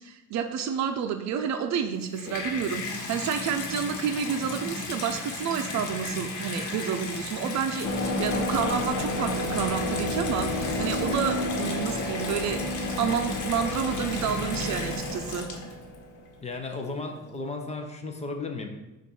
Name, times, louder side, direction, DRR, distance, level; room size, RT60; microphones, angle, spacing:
voice 1, 0.0-12.6 13.0-15.5, right 7 dB, 65° right, 7 dB, 0.6 m, -30 dB
Water tap faucet / Bathtub (filling or washing), 1.9-16.0 16.7-16.8, left 2 dB, 85° left, 1.1 m, -35 dB
sound 1, 7.8-16.4, left 1 dB, 65° left, 0.9 m, -31 dB
voice 2, 16.4-18.7, left 3 dB, 20° left, 4 dB, 0.6 m, -34 dB
7.2 x 2.6 x 5.4 m, 1.0 s
cardioid pair, 165°, 30 cm